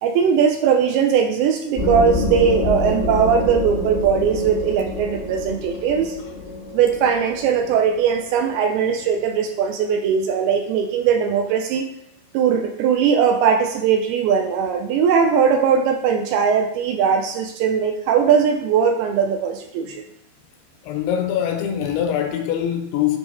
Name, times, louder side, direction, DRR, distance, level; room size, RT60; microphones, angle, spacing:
voice 1, 0.0-6.2 6.7-11.9 12.3-20.0, right 7 dB, 80° right, 2.3 m, -19 dB
sound 1, 1.7-9.1, left 2 dB, 60° left, 0.5 m, -27 dB
voice 2, 20.8-23.2, left 9 dB, 80° left, 2.5 m, -23 dB
8.7 x 3.2 x 4.2 m
omnidirectional pair, 4.8 m